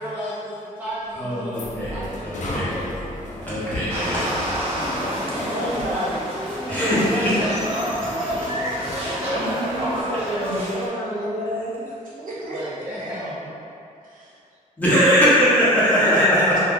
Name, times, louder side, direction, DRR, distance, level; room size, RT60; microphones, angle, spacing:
voice 1, 0.0-1.6 1.9-3.1 5.2-6.3 6.9-10.4 12.5-13.5, equal, 10° right, -10 dB, 0.4 m, -33 dB
sound 1, 0.9-6.1, left 1 dB, 65° left, 0.5 m, -35 dB
voice 2, 1.1-2.7 3.4-4.3 6.7-7.3 14.8-16.6, equal, 10° left, -11 dB, 0.9 m, -20 dB
sound 2, 3.9-10.9, equal, 45° right, 0.7 m, -30 dB
sound 3, 4.0-10.0, equal, 90° left, 0.9 m, -32 dB
voice 3, 5.4-6.1 7.1-7.3 8.0-8.6 9.3-13.2 14.0-14.3 16.0-16.4, right 1 dB, 80° right, -7 dB, 0.8 m, -30 dB
2.8 x 2.3 x 3.6 m, 2.6 s
wide cardioid pair, 155°, 14 cm